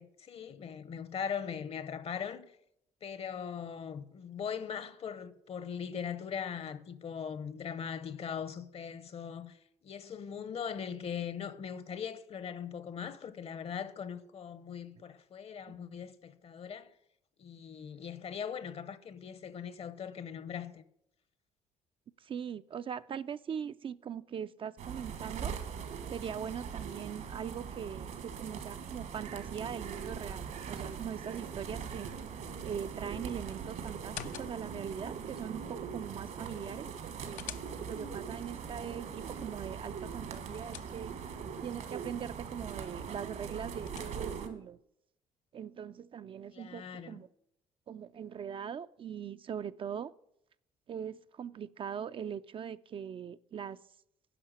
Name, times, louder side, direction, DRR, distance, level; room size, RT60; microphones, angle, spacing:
voice 1, 0.0-2.4 3.0-9.6 9.8-16.9 17.4-20.8 46.5-47.2, left 7 dB, 50° left, 0.8 m, -40 dB
voice 2, 22.2-25.5 26.1-32.1 32.6-37.5 37.9-41.2 41.6-44.8 45.5-47.3 47.9-50.1 50.9-53.8, right 8 dB, 40° right, 0.4 m, -41 dB
sound 1, 24.8-44.5, right 6 dB, 70° right, 1.6 m, -41 dB
sound 2, 34.0-34.9 36.9-38.1 40.1-41.4 43.4-44.5, left 11 dB, 75° left, 0.5 m, -49 dB
10.0 x 5.7 x 7.7 m
supercardioid pair, 75°, 13 cm